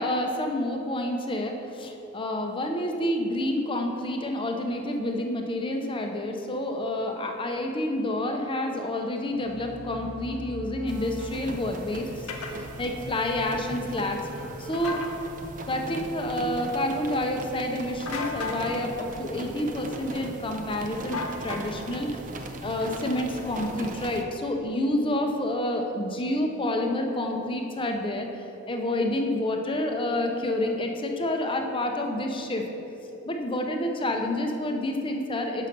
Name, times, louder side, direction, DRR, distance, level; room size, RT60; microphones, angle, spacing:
voice 1, 0.0-12.3 12.8-14.2 14.6-15.0 15.7-22.1 22.6-32.7 33.3-35.7, left 1 dB, 25° left, 3 dB, 0.6 m, -29 dB
sound 1, 9.3-16.0, right 1 dB, 85° right, 1.5 m, -42 dB
sound 2, 10.9-24.2, right 2 dB, 40° right, 0.5 m, -39 dB
sound 3, 12.3-12.5 14.7-15.1 18.1-18.6 21.1-21.9, left 3 dB, 85° left, 0.7 m, -33 dB
6.6 x 5.5 x 5.2 m, 3.0 s
head